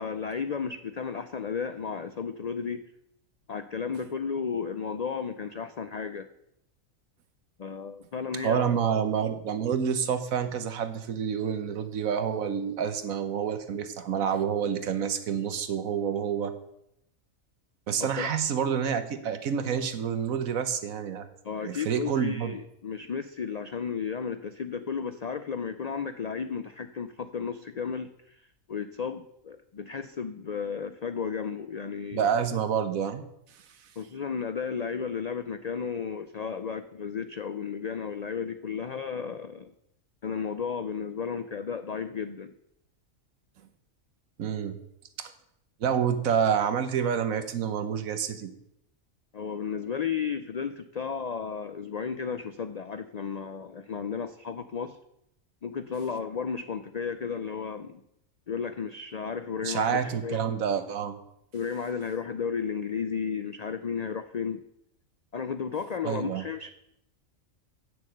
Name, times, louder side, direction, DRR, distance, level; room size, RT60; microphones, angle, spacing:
voice 1, 0.0-2.8 3.5-6.3 7.6-8.7 18.0-18.3 21.4-28.4 28.7-32.3 34.0-39.7 40.2-42.5 49.3-55.0 55.6-58.0 58.5-60.4 61.5-64.6 65.3-66.7, left 6 dB, 85° left, 10 dB, 0.3 m, -33 dB
voice 2, 8.4-16.5 17.9-21.3 21.6-22.6 32.1-33.2 44.4-44.8 45.2-45.3 45.8-48.5 59.6-61.2 66.0-66.5, right 7 dB, 90° right, 10 dB, 1.4 m, -28 dB
8.5 x 6.9 x 7.7 m, 0.79 s
omnidirectional pair, 1.4 m